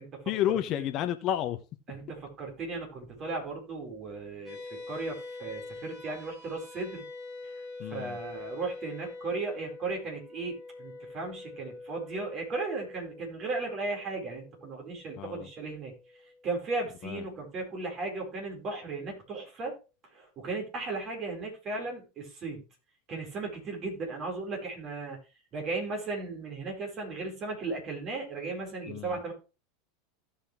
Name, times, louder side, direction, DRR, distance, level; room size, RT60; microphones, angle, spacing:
voice 1, 0.3-1.6 7.8-8.2 15.2-15.5 17.0-17.3 28.9-29.2, left 11 dB, 40° left, 1.0 m, -31 dB
voice 2, 1.9-7.0 7.9-15.9 16.4-19.7 20.1-22.6 23.1-25.2 25.5-29.3, right 3 dB, 35° right, 4.5 m, -36 dB
sound 1, 4.5-17.1, left 3 dB, ahead, 3.5 m, -45 dB
16.5 x 5.8 x 3.2 m
figure-of-eight pair, 85°, 0 cm